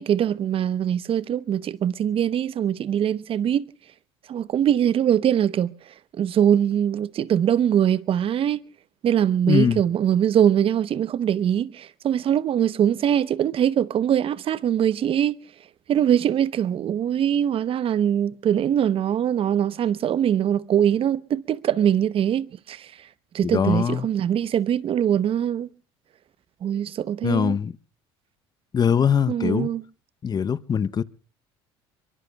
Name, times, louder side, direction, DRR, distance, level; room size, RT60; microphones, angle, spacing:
voice 1, 0.0-3.6 4.3-5.7 6.2-8.6 9.0-15.4 15.9-22.9 23.3-25.7 26.6-27.6 29.3-29.8, right 9 dB, 45° right, 0.8 m, -22 dB
voice 2, 9.5-9.8 23.4-24.1 27.2-27.7 28.7-29.7 30.2-31.0, left 7 dB, 30° left, 0.7 m, -22 dB
24.0 x 23.0 x 2.3 m
supercardioid pair, 80°, 13 cm